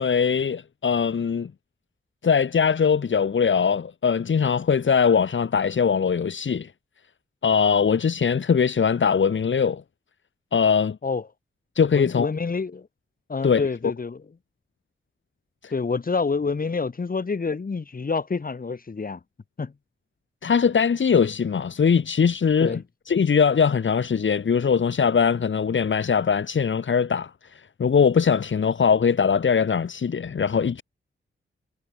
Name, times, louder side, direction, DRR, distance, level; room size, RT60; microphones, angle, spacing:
voice 1, 0.0-1.5 2.2-6.7 7.4-9.8 10.5-11.0 11.8-12.3 13.4-13.6 15.6-15.7 20.4-30.8, left 6 dB, 70° left, 6.0 m, -21 dB
voice 2, 11.9-12.9 13.3-14.2 15.7-19.2 19.6-19.7 22.6-22.8, left 4 dB, 45° left, 5.7 m, -27 dB
wide cardioid pair, 115°, 20 cm